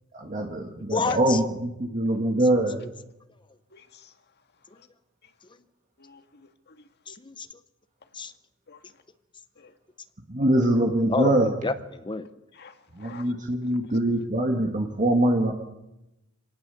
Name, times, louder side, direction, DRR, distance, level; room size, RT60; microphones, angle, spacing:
voice 1, 0.1-2.9 10.3-11.5 12.9-15.5, right 1 dB, 35° right, 1.8 m, -23 dB
voice 2, 0.9-1.4 7.1-7.5 8.1-8.3 11.1-12.3, left 3 dB, 20° left, 0.8 m, -29 dB
voice 3, 3.7-4.1 4.8-4.9 6.0-7.1 8.7-8.8 9.6-9.7 12.5-13.3, left 5 dB, 50° left, 1.9 m, -51 dB
26.5 x 18.5 x 7.0 m
head